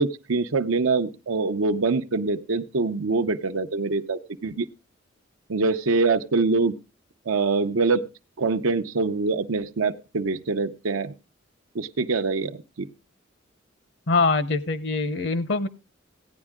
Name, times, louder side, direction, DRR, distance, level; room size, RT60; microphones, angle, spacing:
voice 1, 0.0-4.7 5.5-6.7 7.3-8.0 8.4-11.1 11.7-12.9, right 3 dB, 90° right, 7 dB, 0.7 m, -24 dB
voice 2, 14.1-15.7, left 3 dB, 60° left, 15 dB, 0.7 m, -23 dB
15.5 x 9.7 x 3.6 m, 0.30 s
head